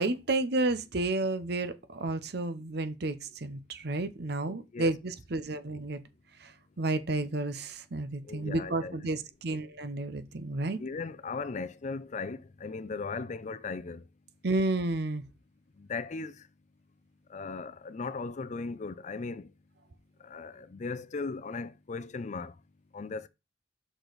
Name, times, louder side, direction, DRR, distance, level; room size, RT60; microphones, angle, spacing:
voice 1, 0.0-6.0 6.4-10.8 14.4-15.2, right 2 dB, 65° right, 0.7 m, -31 dB
voice 2, 4.5-4.9 8.2-9.0 10.8-14.1 15.8-16.5 17.3-19.5 20.2-22.5 22.9-23.3, left 4 dB, 40° left, 0.5 m, -37 dB
6.2 x 4.9 x 4.0 m
head